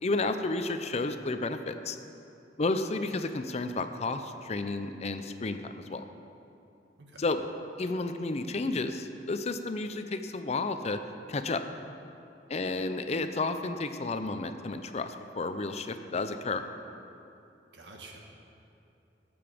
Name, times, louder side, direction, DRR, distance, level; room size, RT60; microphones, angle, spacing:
voice 1, 0.0-2.0 2.6-6.1 7.2-7.4 7.8-11.0 11.3-11.6 12.5-16.6, left 3 dB, 40° left, 9 dB, 0.6 m, -32 dB
voice 2, 17.7-18.2, right 3 dB, 85° right, 1 dB, 1.5 m, -48 dB
15.5 x 7.0 x 5.1 m, 2.8 s
head